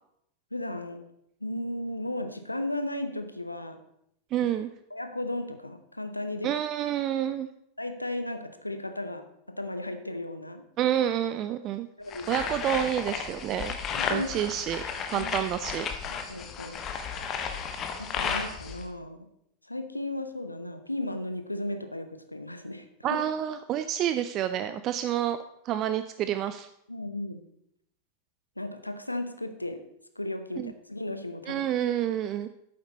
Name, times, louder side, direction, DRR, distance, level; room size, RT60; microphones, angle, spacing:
voice 1, 0.5-1.0 1.4-3.8 4.9-6.6 7.8-10.6 12.0-12.4 14.0-14.4 15.1-15.3 16.1-16.8 18.0-19.3 19.6-23.2 26.9-27.4 28.6-29.8 30.2-31.6, left 1 dB, 85° left, 9 dB, 0.8 m, -35 dB
voice 2, 4.3-4.7 6.4-7.5 10.8-11.9 12.3-13.8 14.1-14.8 15.1-15.9 23.0-25.4 25.6-26.7 30.6-30.7 31.5-32.5, right 11 dB, 35° right, 10 dB, 0.4 m, -28 dB
sound 1, 12.1-18.8, left 6 dB, 30° left, 1.0 m, -33 dB
8.7 x 7.8 x 4.2 m, 0.77 s
figure-of-eight pair, 90°, 0 cm